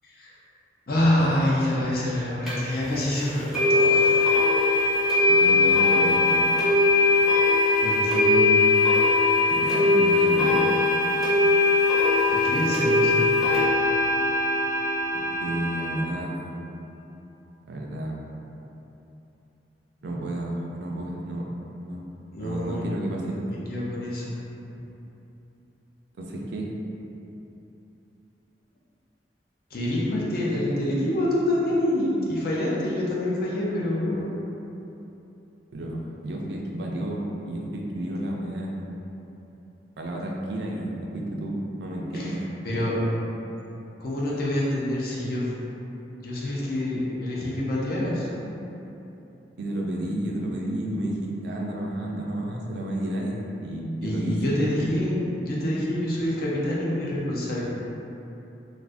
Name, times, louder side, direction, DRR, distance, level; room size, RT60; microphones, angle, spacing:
voice 1, 0.9-4.2 7.8-8.7 12.3-13.3 22.3-22.9 23.3-24.4 29.7-34.3 42.1-42.3 42.6-42.9 44.0-45.5 46.2-48.3 54.0-57.7, left 1 dB, 55° left, -6 dB, 0.6 m, -26 dB
sound 1, 2.5-2.6 3.5-16.0, left 3 dB, ahead, 0.6 m, -20 dB
voice 2, 5.3-6.5 9.5-10.6 15.4-16.5 17.7-18.2 20.0-21.4 21.8-22.1 22.4-23.4 26.2-26.7 35.7-38.8 40.0-41.5 41.8-42.4 49.6-54.4, right 1 dB, 70° right, -1 dB, 0.4 m, -31 dB
2.5 x 2.5 x 3.4 m, 3.0 s
head